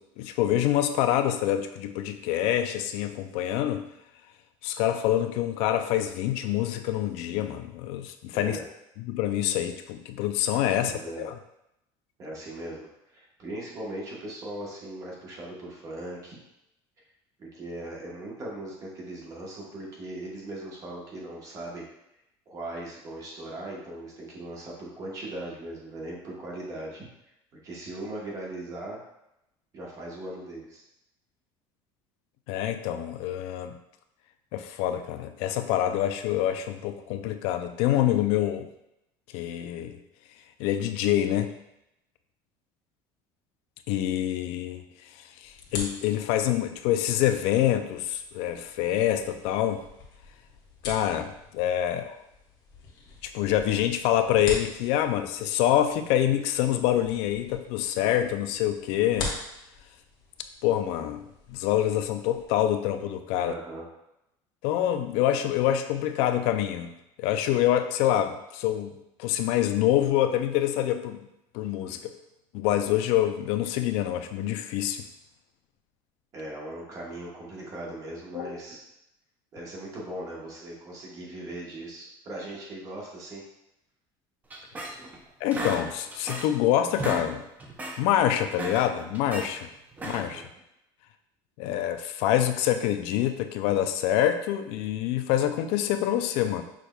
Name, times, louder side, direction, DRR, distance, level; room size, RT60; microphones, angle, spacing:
voice 1, 0.0-3.9 4.6-8.6 9.0-11.3 32.5-33.8 34.5-38.7 39.3-40.0 40.6-41.5 43.9-44.8 45.4-49.8 50.8-52.2 53.2-59.3 60.6-61.2 61.5-63.5 64.6-66.9 67.2-71.2 71.5-72.1 72.5-75.1 78.3-78.5 85.4-87.4 88.0-89.7 90.0-90.4 91.6-96.6, left 11 dB, 70° left, 9 dB, 0.4 m, -26 dB
voice 2, 8.3-8.6 10.6-11.3 12.2-16.4 17.4-21.8 22.5-27.0 27.6-29.0 29.7-30.8 63.3-63.8 76.3-78.8 79.5-83.4 85.0-85.1 90.0-90.4, right 1 dB, 30° right, -3 dB, 1.2 m, -39 dB
sound 1, 45.4-62.5, left 3 dB, 45° left, 1.1 m, -43 dB
sound 2, 84.5-85.2 85.5-86.6 86.9-87.3 87.6-88.0 88.4-89.5 89.9-90.4, right 2 dB, 15° right, 0.5 m, -35 dB
6.0 x 3.4 x 2.3 m, 0.85 s
cardioid pair, 160°, 11 cm